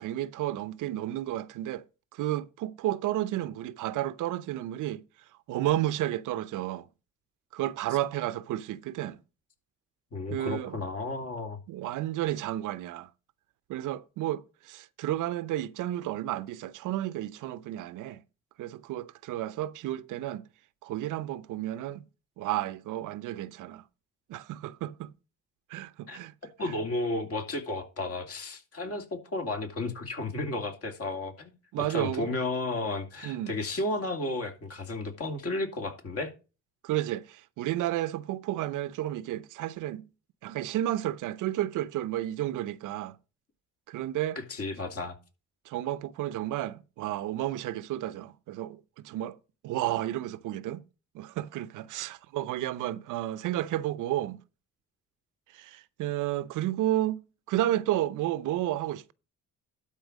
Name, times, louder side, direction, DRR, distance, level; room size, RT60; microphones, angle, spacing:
voice 1, 0.0-1.8 2.1-5.0 5.5-6.9 7.5-9.2 10.3-10.8 11.7-13.1 13.7-18.2 18.6-20.4 20.8-22.0 22.4-23.8 24.3-25.1 25.7-26.3 26.6-26.8 31.7-32.4 33.2-33.5 36.8-40.0 40.4-43.2 43.9-44.4 45.7-49.4 49.6-50.8 51.1-54.4 55.5-57.2 57.5-59.1, right 13 dB, 85° right, 0.7 m, -32 dB
voice 2, 10.1-11.6 26.1-26.2 26.6-31.5 31.8-36.3 44.5-45.2, left 2 dB, 50° left, 2.7 m, -33 dB
12.0 x 4.4 x 6.3 m
cardioid pair, 90°, 30 cm